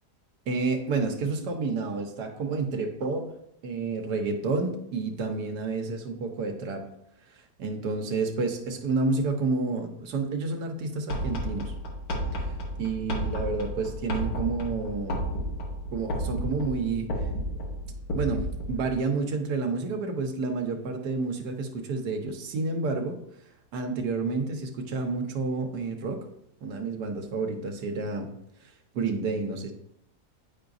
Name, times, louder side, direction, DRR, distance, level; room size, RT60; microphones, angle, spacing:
voice 1, 0.5-3.3 3.6-6.9 7.6-11.7 12.3-12.5 12.8-15.2 15.9-17.1 18.1-23.2 23.7-26.2 26.6-28.3 28.9-29.7, right 3 dB, 85° right, 3 dB, 1.4 m, -30 dB
sound 1, 11.1-18.9, equal, 65° left, 1.5 m, -32 dB
9.5 x 4.7 x 2.6 m, 0.78 s
omnidirectional pair, 1.7 m